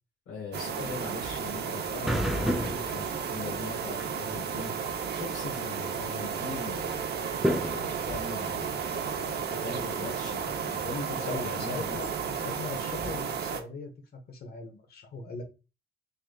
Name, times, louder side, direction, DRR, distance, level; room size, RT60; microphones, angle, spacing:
voice 1, 0.3-7.0 7.5-12.0, left 3 dB, 75° left, 1.2 m, -41 dB
sound 1, 0.5-13.6, right 7 dB, 55° right, 0.8 m, -33 dB
sound 2, 0.6-11.2, equal, ahead, 0.5 m, -36 dB
voice 2, 10.8-13.9 14.3-15.4, left 3 dB, 50° left, 1.2 m, -40 dB
4.5 x 3.2 x 2.3 m
cardioid pair, 90°, 20 cm